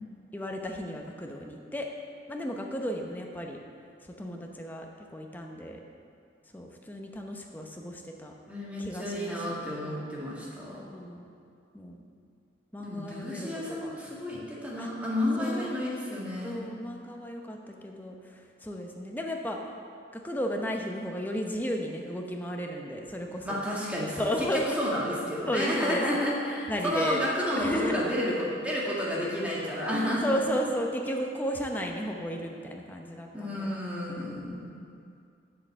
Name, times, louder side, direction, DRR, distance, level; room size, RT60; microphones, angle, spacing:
voice 1, 0.3-1.9 2.3-3.6 4.2-5.8 6.5-8.3 8.8-10.0 10.9-11.2 11.7-12.0 12.7-13.9 14.8-14.9 15.4-15.8 16.4-18.2 18.6-19.6 20.1-23.6 24.2-24.8 25.4-26.1 26.7-27.2 27.6-28.0 30.2-33.7, equal, 10° left, 1 dB, 0.8 m, -34 dB
voice 2, 8.5-10.8 12.8-16.6 23.4-24.5 24.8-30.3 33.3-34.7, left 1 dB, 10° right, -6 dB, 1.9 m, -31 dB
7.7 x 7.6 x 6.7 m, 2.4 s
head